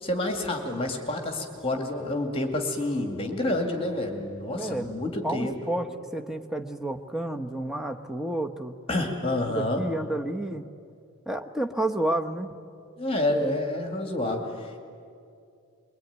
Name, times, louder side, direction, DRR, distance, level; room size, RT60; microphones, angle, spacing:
voice 1, 0.0-5.5 8.9-9.8 13.0-14.8, left 1 dB, 25° left, 3 dB, 2.2 m, -28 dB
voice 2, 4.6-4.9 5.2-8.7 9.5-10.7 11.3-12.6, right 1 dB, ahead, 3 dB, 1.0 m, -30 dB
24.0 x 22.5 x 9.4 m, 2.4 s
head